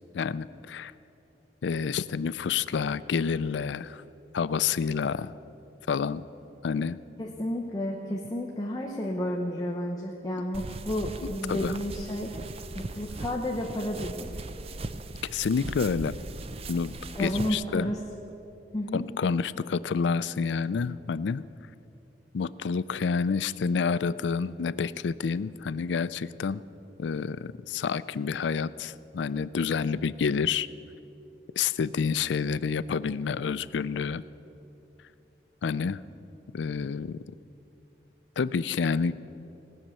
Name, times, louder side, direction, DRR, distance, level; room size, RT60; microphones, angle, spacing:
voice 1, 0.1-0.9 1.6-4.0 4.3-5.3 5.9-6.3 6.6-7.0 11.2-11.8 15.2-16.1 16.7-16.9 17.2-17.9 18.9-21.4 22.3-26.6 27.0-30.7 31.6-34.2 35.6-36.0 36.5-37.2 38.4-39.1, left 5 dB, 90° left, 17 dB, 0.4 m, -28 dB
voice 2, 7.2-12.3 12.7-14.4 17.2-18.0 18.7-19.1, left 1 dB, 20° left, -1 dB, 0.9 m, -31 dB
sound 1, 10.5-17.5, right 2 dB, 35° right, 0.5 m, -39 dB
18.5 x 6.6 x 8.9 m, 2.9 s
head